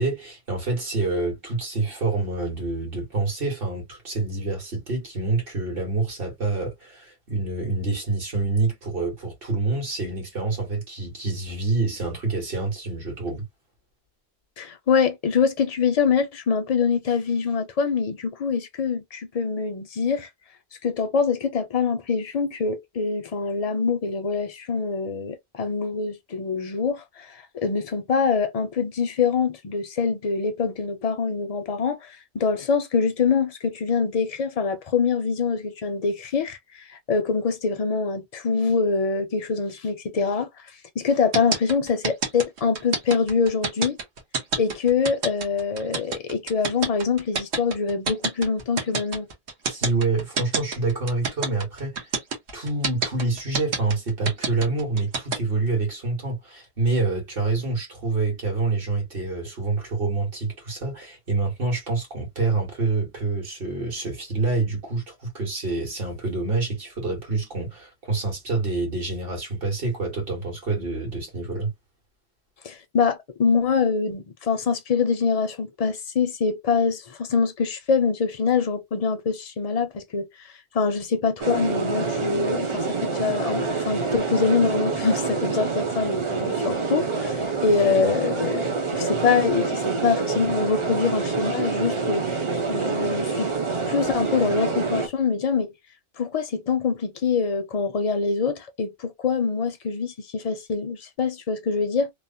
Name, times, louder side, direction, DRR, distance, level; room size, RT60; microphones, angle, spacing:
voice 1, 0.0-13.4 49.7-52.0 52.5-71.7, right 3 dB, 60° right, 1.6 m, -27 dB
voice 2, 14.6-20.3 20.8-40.5 41.0-44.0 44.6-49.3 72.6-80.3 80.7-92.2 92.7-93.5 93.9-95.7 96.2-102.1, left 5 dB, 50° left, 0.5 m, -24 dB
sound 1, 41.3-55.4, right 4 dB, 85° right, 1.2 m, -27 dB
sound 2, 81.4-95.1, right 4 dB, 35° right, 0.6 m, -26 dB
3.0 x 2.0 x 2.5 m
omnidirectional pair, 1.1 m